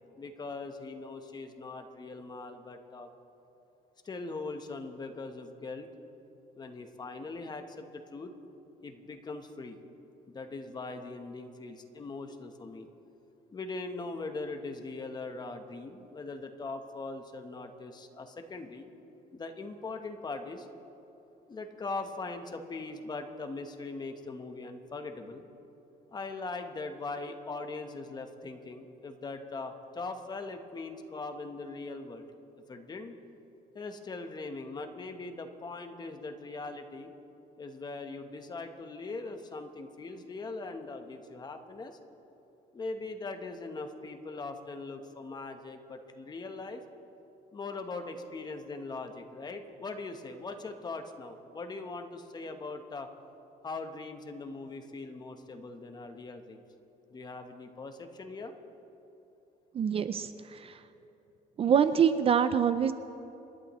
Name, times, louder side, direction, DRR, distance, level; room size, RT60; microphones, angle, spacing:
voice 1, 0.2-3.1 4.0-5.9 6.5-8.3 8.8-9.8 10.3-12.9 13.5-18.9 19.3-20.7 21.5-25.4 26.1-32.3 32.7-33.1 33.7-37.1 37.6-42.0 42.7-46.8 47.5-53.1 53.6-56.6 57.1-58.5, left 3 dB, 25° left, 6 dB, 1.0 m, -40 dB
voice 2, 59.7-60.8 61.6-62.9, right 7 dB, 40° right, 12 dB, 0.5 m, -25 dB
27.0 x 11.5 x 3.1 m, 3.0 s
cardioid pair, 125°, 16 cm